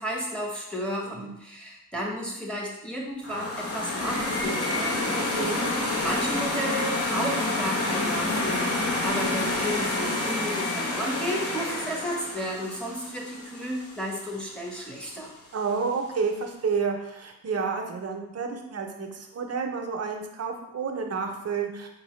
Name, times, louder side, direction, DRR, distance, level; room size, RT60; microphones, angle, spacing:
voice 1, 0.0-5.6 6.0-15.3, equal, 5° left, -3 dB, 0.9 m, -33 dB
sound 1, 3.2-14.2, left 2 dB, 40° left, 0.8 m, -28 dB
voice 2, 5.1-5.6 15.5-21.9, right 5 dB, 45° right, 3 dB, 0.6 m, -30 dB
4.6 x 2.5 x 3.1 m, 0.84 s
wide cardioid pair, 95°, 35 cm